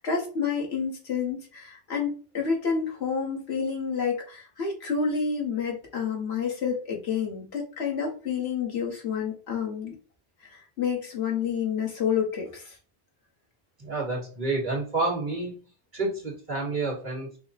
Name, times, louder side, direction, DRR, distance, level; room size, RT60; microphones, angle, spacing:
voice 1, 0.0-9.9 10.4-10.5 10.8-12.7, left 6 dB, 85° left, -1 dB, 1.6 m, -29 dB
voice 2, 13.8-15.5 15.9-17.4, right 3 dB, 50° right, -3 dB, 1.8 m, -29 dB
5.5 x 2.2 x 4.1 m, 0.38 s
omnidirectional pair, 1.0 m